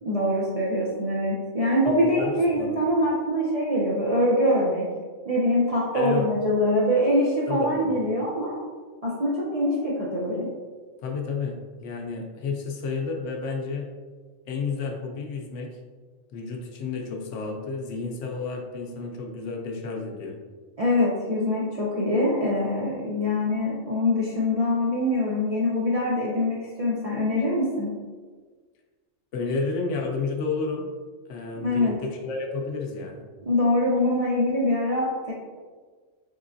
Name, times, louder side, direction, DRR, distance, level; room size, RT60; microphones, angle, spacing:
voice 1, 0.0-4.9 5.3-8.6 9.0-10.5 20.8-27.9 31.6-32.0 33.4-35.3, left 1 dB, 45° right, -7 dB, 0.5 m, -24 dB
voice 2, 1.9-2.7 5.9-6.3 7.5-8.0 11.0-13.9 14.5-15.7 16.3-20.4 29.3-30.8 31.3-33.2, left 4 dB, 75° left, 1 dB, 0.9 m, -31 dB
3.7 x 3.2 x 2.6 m, 1.5 s
omnidirectional pair, 1.3 m